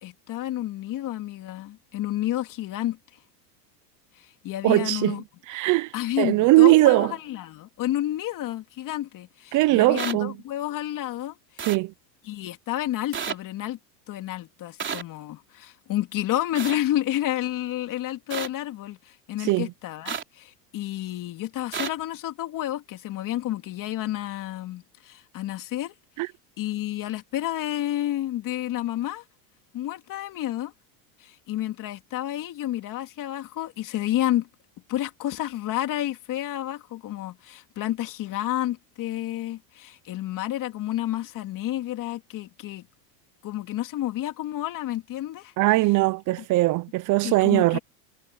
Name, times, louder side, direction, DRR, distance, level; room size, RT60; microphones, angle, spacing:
voice 1, 0.0-3.0 4.2-5.2 5.9-11.7 12.2-13.8 14.1-25.9 26.6-29.2 29.7-30.7 31.2-34.5 34.9-42.9 43.4-45.5 47.2-47.8, left 13 dB, 40° left, 3.0 m, -30 dB
voice 2, 4.6-5.2 5.5-7.1 9.5-10.3 11.7-11.9 19.4-19.7 26.2-26.3 45.6-47.8, right 19 dB, 40° right, 0.8 m, -20 dB
sound 1, 10.0-10.1 11.6-11.8 13.1-13.3 14.8-15.0 16.5-16.8 18.3-18.5 20.1-20.2 21.7-21.9, right 7 dB, 25° right, 3.7 m, -30 dB
supercardioid pair, 125°, 48 cm